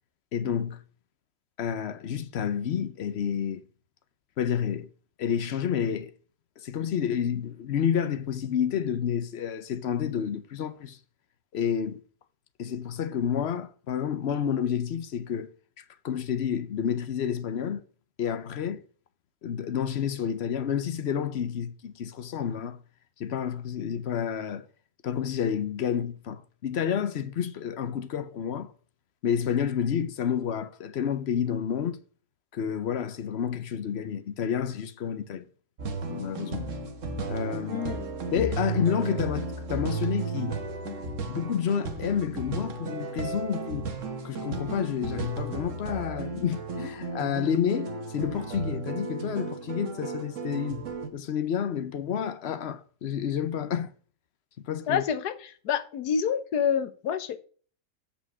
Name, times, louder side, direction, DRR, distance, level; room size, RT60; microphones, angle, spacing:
voice 1, 0.3-0.8 1.6-3.6 4.4-4.9 5.2-6.1 6.6-11.0 11.5-12.0 12.6-15.5 15.8-17.8 18.2-18.8 19.4-22.8 23.2-24.7 25.0-28.7 29.2-32.0 32.5-35.4 36.1-36.7 37.3-37.9 38.3-40.6 40.8-41.0 41.3-43.9 44.2-50.8 51.1-53.9 54.6-55.0, left 8 dB, 55° left, 0.8 m, -29 dB
sound 1, 35.8-51.1, right 3 dB, 50° right, 1.5 m, -34 dB
voice 2, 37.7-38.2 54.9-57.4, left 7 dB, 75° left, 1.4 m, -28 dB
8.4 x 5.1 x 6.1 m
omnidirectional pair, 1.7 m